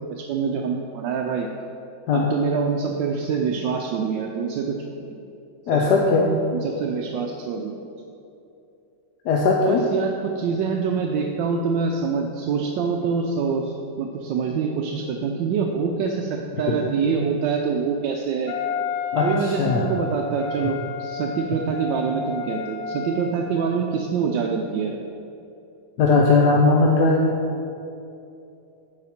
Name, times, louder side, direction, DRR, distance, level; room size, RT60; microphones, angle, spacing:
voice 1, 0.1-1.5 2.1-5.1 5.7-6.1 6.5-7.7 9.6-18.5 19.1-25.0, right 5 dB, 80° right, 2 dB, 1.3 m, -25 dB
voice 2, 5.7-6.3 9.2-9.8 16.7-16.8 19.1-19.9 26.0-27.4, left 3 dB, 70° left, -1 dB, 1.2 m, -19 dB
Wind instrument woodwind instrument, 18.5-23.7, left 5 dB, 85° left, 1.5 m, -32 dB
14.5 x 5.0 x 4.2 m, 2.7 s
omnidirectional pair, 2.0 m